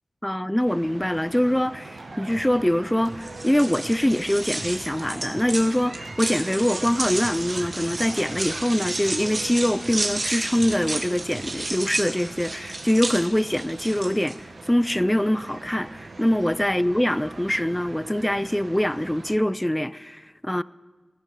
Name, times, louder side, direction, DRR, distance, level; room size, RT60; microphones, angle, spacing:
voice 1, 0.2-20.6, left 1 dB, 10° left, 0.4 m, -24 dB
sound 1, 0.6-19.4, right 3 dB, 65° right, 1.5 m, -42 dB
sound 2, 2.0-2.6 3.0-4.1 4.5-5.6 6.0-8.6 9.0-10.1 10.5-11.6, right 2 dB, 90° right, 3.4 m, -43 dB
sound 3, 3.2-14.3, right 2 dB, 45° right, 1.9 m, -32 dB
17.5 x 16.0 x 4.9 m
wide cardioid pair, 85°, 0 cm